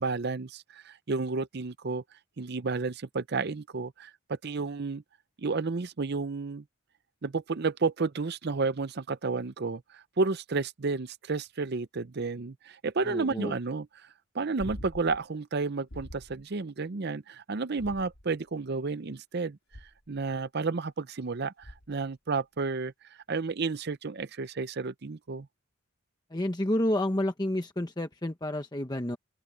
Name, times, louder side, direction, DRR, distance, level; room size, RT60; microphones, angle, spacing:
voice 1, 0.0-2.0 2.4-5.0 5.4-6.6 7.2-13.9 14.3-19.6 20.1-22.9 23.3-25.5, right 4 dB, 50° right, 0.6 m, -31 dB
voice 2, 13.0-13.5 26.3-29.2, left 1 dB, 20° left, 1.0 m, -30 dB
sound 1, 14.6-15.2 15.9-16.4 17.7-18.5 19.7-20.2 21.6-22.1 24.4-24.5, equal, 75° left, 3.1 m, -45 dB
open air
head